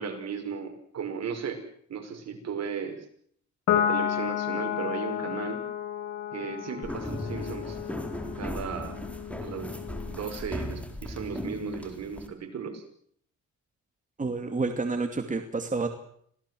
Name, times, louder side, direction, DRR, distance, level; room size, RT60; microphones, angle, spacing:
voice 1, 0.0-1.6 1.9-3.0 3.7-5.6 6.3-7.8 8.4-9.0 9.4-9.7 10.1-12.8, right 6 dB, 60° right, 5 dB, 6.0 m, -35 dB
Piano, 3.7-10.4, left 10 dB, 75° left, 3.5 m, -32 dB
sound 1, 6.8-12.3, left 1 dB, 5° left, 4.2 m, -37 dB
voice 2, 14.2-15.9, right 3 dB, 25° right, 6 dB, 2.5 m, -29 dB
26.5 x 17.5 x 7.8 m, 0.63 s
cardioid pair, 90°, 30 cm